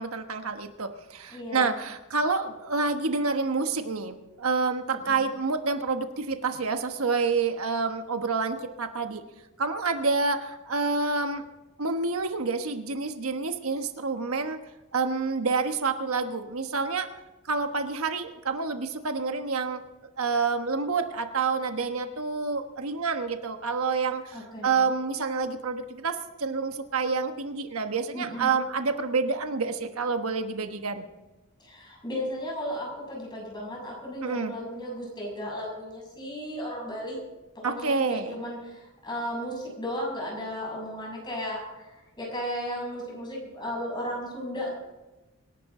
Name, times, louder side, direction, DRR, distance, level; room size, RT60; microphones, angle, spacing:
voice 1, 0.0-9.2 9.6-11.4 11.8-14.6 14.9-17.1 17.5-19.8 20.2-31.1 34.2-34.5 37.6-38.4, right 4 dB, 85° right, 7 dB, 1.3 m, -28 dB
voice 2, 1.3-1.8 4.9-5.2 24.3-24.7 28.1-28.5 31.6-37.2 37.6-44.8, equal, 20° left, -2 dB, 6.9 m, -35 dB
25.5 x 11.5 x 3.8 m, 1.1 s
head